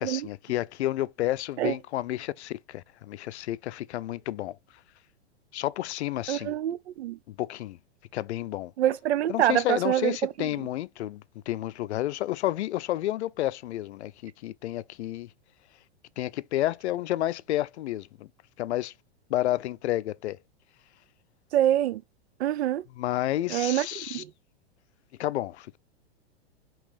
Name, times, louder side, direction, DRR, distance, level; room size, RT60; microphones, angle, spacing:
voice 1, 0.0-4.6 5.5-6.6 7.3-7.8 8.1-8.7 9.3-15.3 16.2-18.3 18.6-18.9 19.3-20.4 22.9-24.2 25.2-25.8, left 14 dB, 80° left, 0.5 m, -30 dB
voice 2, 6.3-7.2 8.8-10.1 21.5-22.0 22.4-22.8 23.5-23.9 24.1-24.2, right 12 dB, 75° right, 0.6 m, -25 dB
5.2 x 3.0 x 3.4 m
hypercardioid pair, 115°, 33 cm